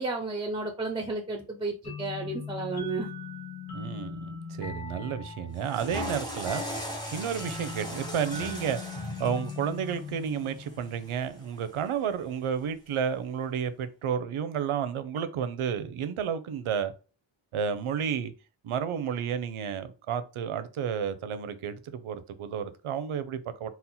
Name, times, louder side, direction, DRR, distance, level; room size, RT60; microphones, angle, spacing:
voice 1, 0.0-3.1, right 3 dB, 10° right, 0.4 m, -32 dB
sound 1, 1.8-11.2, left 4 dB, 50° left, 2.0 m, -40 dB
voice 2, 3.7-6.6 7.1-8.9 9.2-16.9 17.5-18.3 18.6-23.7, right 7 dB, 80° right, 0.6 m, -31 dB
Water / Toilet flush, 5.5-11.8, equal, 10° left, 0.8 m, -39 dB
4.2 x 2.1 x 4.1 m
wide cardioid pair, 180°, 49 cm